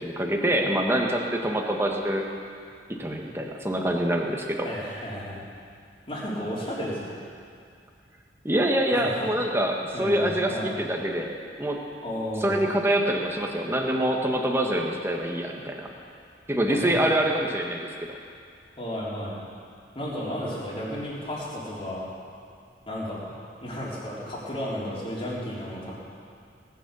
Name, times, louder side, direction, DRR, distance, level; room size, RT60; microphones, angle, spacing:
voice 1, 0.0-2.3 2.9-4.7 8.4-11.8 12.4-15.9 16.5-18.2, right 1 dB, 15° right, 1 dB, 1.4 m, -25 dB
voice 2, 4.6-5.4 6.1-7.2 8.9-9.1 9.9-10.7 12.0-12.6 16.7-17.1 18.8-19.4 19.9-22.0 22.8-23.2 23.6-25.9, equal, 30° left, -6 dB, 3.8 m, -33 dB
19.0 x 9.5 x 7.0 m, 2.4 s
head